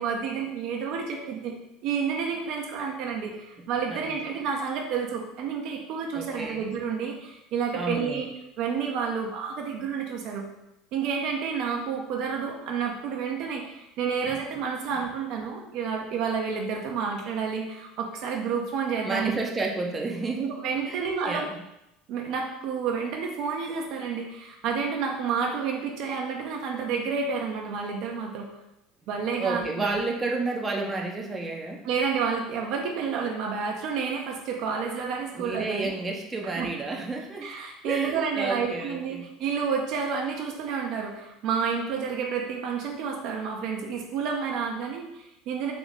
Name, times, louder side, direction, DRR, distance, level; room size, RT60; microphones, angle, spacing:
voice 1, 0.0-1.6 1.8-8.3 8.6-10.4 10.9-19.4 20.4-21.5 22.1-28.5 29.1-30.0 31.8-36.0 36.6-36.7 37.4-45.7, right 6 dB, 60° right, 1 dB, 0.7 m, -30 dB
voice 2, 3.9-4.4 6.1-6.6 7.7-8.3 14.2-14.4 19.0-20.5 20.9-21.6 29.4-31.9 35.3-37.5 37.8-39.3, right 3 dB, 20° right, 0 dB, 0.7 m, -31 dB
3.7 x 3.0 x 3.6 m, 0.88 s
hypercardioid pair, 80°, 0 cm